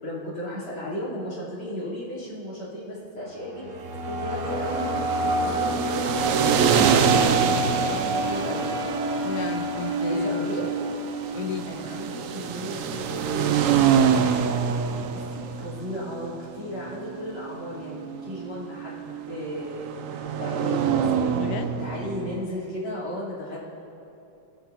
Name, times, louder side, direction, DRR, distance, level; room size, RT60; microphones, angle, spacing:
voice 1, 0.0-4.9 5.2-6.4 6.7-8.7 9.8-10.7 11.7-14.3 15.1-21.4 21.8-23.7, left 1 dB, 90° left, -7 dB, 4.8 m, -35 dB
sound 1, 3.2-13.4, right 1 dB, 50° right, 1.1 m, -29 dB
sound 2, 4.6-22.5, right 7 dB, 85° right, 0.7 m, -26 dB
voice 2, 9.2-10.5 11.3-11.7 21.3-21.7, left 7 dB, 70° left, 9 dB, 1.1 m, -33 dB
19.5 x 14.0 x 2.9 m, 2.8 s
omnidirectional pair, 2.1 m